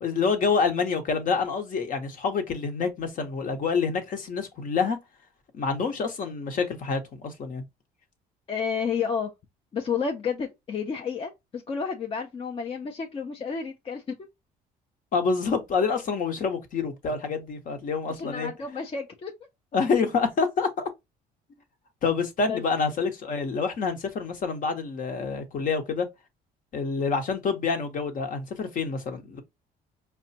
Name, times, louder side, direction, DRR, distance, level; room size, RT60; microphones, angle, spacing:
voice 1, 0.0-5.0 5.5-7.6 15.1-18.5 19.7-20.9 22.0-26.1 26.7-29.4, left 5 dB, 50° left, 1.1 m, -27 dB
voice 2, 8.5-9.3 9.7-14.2 18.1-19.3 22.5-22.6, left 6 dB, 35° left, 0.6 m, -31 dB
4.8 x 2.3 x 2.7 m
cardioid pair, 110°, 17 cm